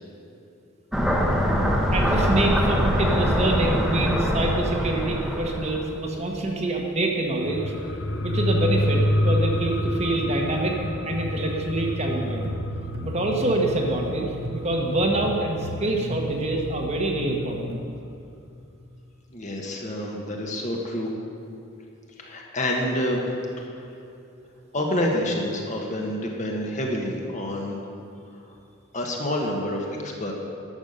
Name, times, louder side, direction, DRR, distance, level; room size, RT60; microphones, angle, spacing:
sound 1, 0.9-5.9, equal, ahead, 0.9 m, -23 dB
voice 1, 1.9-7.6 8.2-10.8 11.0-12.5 13.0-17.9, right 2 dB, 30° right, 1 dB, 1.1 m, -26 dB
sound 2, 7.4-16.5 16.8-16.9, left 1 dB, 65° left, 0.7 m, -28 dB
sound 3, 12.4-17.8, left 1 dB, 90° right, 1.0 m, -35 dB
voice 2, 19.3-21.1 22.2-23.2 23.6-23.9 24.7-27.8 28.3-28.4 28.9-30.3, left 1 dB, 35° left, 0 dB, 1.3 m, -28 dB
11.5 x 7.2 x 6.6 m, 2.6 s
head